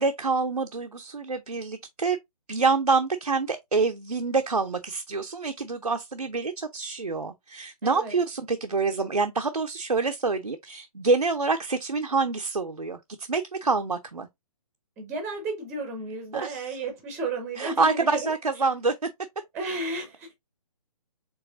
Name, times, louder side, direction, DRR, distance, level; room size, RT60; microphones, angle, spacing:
voice 1, 0.0-2.2 2.5-14.3 16.3-16.6 17.6-18.9, right 4 dB, 85° right, 0.6 m, -26 dB
voice 2, 7.8-8.1 15.0-18.3 19.5-20.3, right 2 dB, 10° right, 0.6 m, -33 dB
4.7 x 3.1 x 2.5 m
figure-of-eight pair, 135°, 19 cm